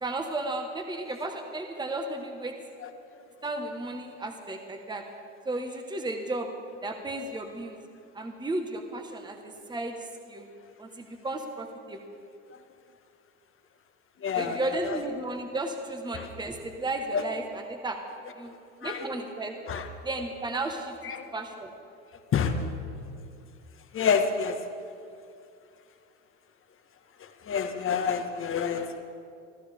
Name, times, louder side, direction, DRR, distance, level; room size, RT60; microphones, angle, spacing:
voice 1, 0.0-2.5 3.4-5.0 5.4-6.5 6.8-7.8 8.1-9.9 10.3-10.5 10.8-12.0 14.3-18.0 18.4-18.5 18.8-19.6 20.0-20.9 21.3-21.7, right 2 dB, 10° right, 4 dB, 1.5 m, -34 dB
voice 2, 14.2-15.0 16.1-16.3 17.1-17.2 18.8-19.0 19.7-19.9 21.0-21.3 22.3-22.5 23.9-24.6 27.2-29.0, left 6 dB, 35° left, 6 dB, 1.6 m, -28 dB
24.5 x 14.5 x 3.6 m, 2.4 s
hypercardioid pair, 85°, 38 cm